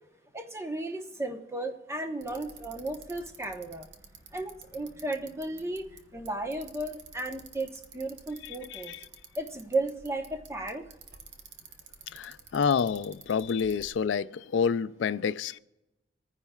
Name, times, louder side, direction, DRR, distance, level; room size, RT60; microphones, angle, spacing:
voice 1, 0.3-3.9 4.3-5.9 6.1-8.9 9.4-10.9, right 2 dB, 15° right, 1.0 m, -34 dB
Bicycle, 2.2-13.9, right 5 dB, 65° right, 1.1 m, -52 dB
voice 2, 8.4-9.1 12.1-15.6, left 6 dB, 75° left, 0.4 m, -29 dB
26.5 x 9.9 x 2.3 m
head